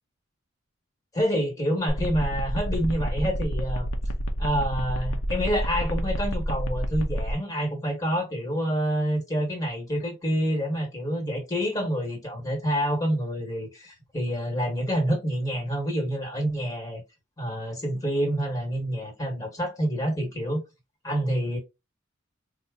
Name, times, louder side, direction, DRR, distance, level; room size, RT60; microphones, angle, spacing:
voice 1, 1.1-3.9 4.4-17.0 17.4-20.6 21.0-21.6, equal, 15° left, 1.2 m, -27 dB
sound 1, 1.9-7.3, equal, 90° left, 0.7 m, -29 dB
4.3 x 2.1 x 3.5 m
head